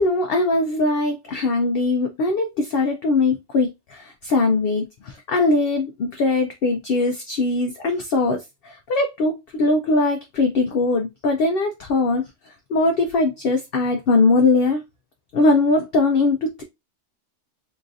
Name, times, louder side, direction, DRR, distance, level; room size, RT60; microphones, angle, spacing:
voice 1, 0.0-14.8 15.3-16.6, left 3 dB, 60° left, 4 dB, 0.7 m, -21 dB
3.9 x 2.5 x 2.5 m, 0.22 s
omnidirectional pair, 1.3 m